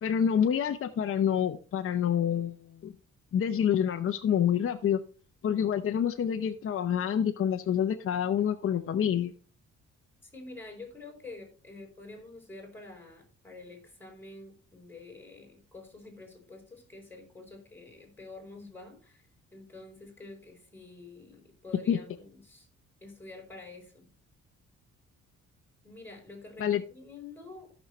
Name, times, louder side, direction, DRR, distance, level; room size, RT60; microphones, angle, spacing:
voice 1, 0.0-2.9 3.3-5.0 5.4-9.3 21.9-22.0 26.6-26.8, left 8 dB, 50° left, 6 dB, 0.8 m, -27 dB
voice 2, 10.3-22.7 23.0-24.1 25.8-27.7, left 3 dB, 5° left, 2 dB, 4.4 m, -48 dB
14.5 x 6.3 x 3.2 m, 0.38 s
cardioid pair, 105°, 29 cm